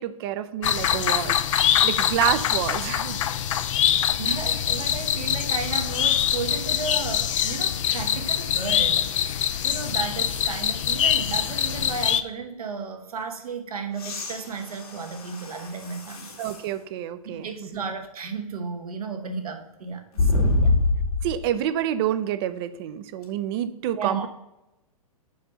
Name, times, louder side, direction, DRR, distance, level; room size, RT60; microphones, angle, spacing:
voice 1, 0.0-3.2 16.4-17.8 21.2-24.3, right 11 dB, 45° right, 12 dB, 0.5 m, -28 dB
sound 1, 0.6-12.2, left 10 dB, 60° left, 0.5 m, -24 dB
voice 2, 3.9-16.4 17.2-20.7 24.0-24.3, right 5 dB, 80° right, 4 dB, 1.3 m, -34 dB
sound 2, 13.9-16.7 17.3-17.4 20.1-21.4 23.2-23.3, left 2 dB, 75° left, 2.0 m, -25 dB
5.3 x 4.8 x 5.4 m, 0.95 s
hypercardioid pair, 120°, 19 cm